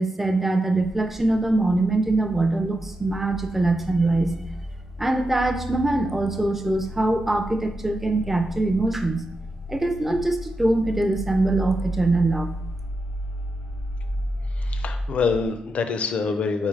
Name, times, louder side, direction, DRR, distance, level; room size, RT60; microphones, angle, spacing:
voice 1, 0.0-4.3 5.0-9.3 9.7-12.5, right 2 dB, 10° right, 7 dB, 0.4 m, -23 dB
sound 1, 0.8-15.5, left 1 dB, 90° left, 0.9 m, -33 dB
voice 2, 14.7-16.7, left 5 dB, 50° left, 8 dB, 0.4 m, -25 dB
4.5 x 3.6 x 3.2 m, 0.78 s
wide cardioid pair, 155°, 3 cm